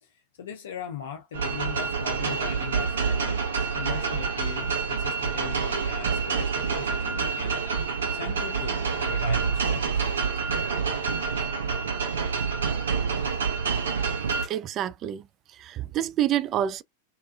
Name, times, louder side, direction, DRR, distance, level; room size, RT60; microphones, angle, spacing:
voice 1, 0.0-3.4 3.7-7.6 8.1-10.1, left 9 dB, 60° left, 0.5 m, -39 dB
sound 1, 1.3-14.5, right 5 dB, 65° right, 1.0 m, -27 dB
voice 2, 14.4-15.3 15.6-16.8, right 11 dB, 30° right, 0.3 m, -27 dB
3.4 x 2.5 x 2.4 m
figure-of-eight pair, 90°, 0 cm